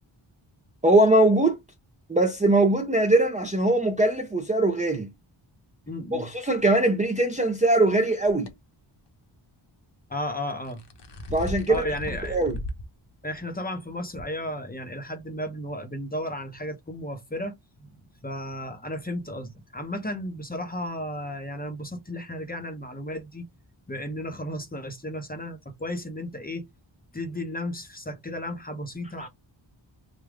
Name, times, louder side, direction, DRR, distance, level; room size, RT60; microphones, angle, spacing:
voice 1, 0.8-1.6 2.1-5.1 6.1-8.5 11.3-11.8 12.3-12.6, right 2 dB, 15° right, 0.5 m, -21 dB
voice 2, 5.9-6.3 10.1-10.8 11.7-12.4 13.2-17.6 17.8-17.9 18.2-23.5 23.9-26.7 27.1-29.3, left 1 dB, 20° left, 0.7 m, -34 dB
sound 1, 8.3-8.5 10.5-12.9 13.3-13.4 14.2-14.3, left 1 dB, 55° left, 0.9 m, -36 dB
3.5 x 2.2 x 3.5 m
wide cardioid pair, 115°, 49 cm